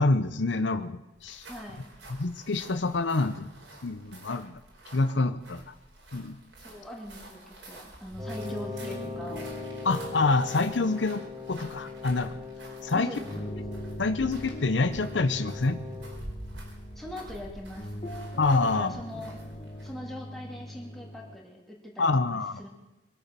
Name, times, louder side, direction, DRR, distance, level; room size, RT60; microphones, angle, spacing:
voice 1, 0.0-1.5 2.1-3.5 3.8-4.6 4.9-5.7 6.1-6.4 9.8-12.4 12.8-13.1 14.0-15.8 18.4-19.0 22.0-22.6, left 3 dB, 75° left, 11 dB, 0.7 m, -27 dB
sound 1, 1.2-20.0, right 1 dB, 75° right, 4.7 m, -48 dB
voice 2, 1.5-1.8 6.6-9.4 12.9-13.6 17.0-17.9 18.7-19.3 19.8-22.7, left 1 dB, ahead, -2 dB, 2.6 m, -42 dB
sound 2, 8.1-21.4, equal, 30° left, 1.5 m, -41 dB
Wind instrument woodwind instrument, 8.2-16.2, left 5 dB, 25° right, 1.5 m, -42 dB
22.5 x 8.7 x 6.9 m, 1.0 s
head